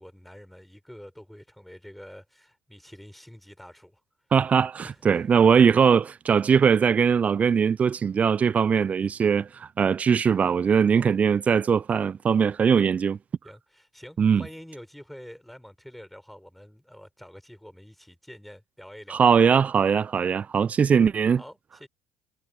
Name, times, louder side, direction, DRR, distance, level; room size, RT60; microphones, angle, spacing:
voice 1, 0.0-4.0 4.8-5.4 11.0-11.2 13.4-19.2 21.4-21.9, equal, ahead, 5.2 m, -47 dB
voice 2, 4.3-13.2 14.2-14.4 19.1-21.4, right 6 dB, 35° right, 0.4 m, -21 dB
hypercardioid pair, 70°, 4 cm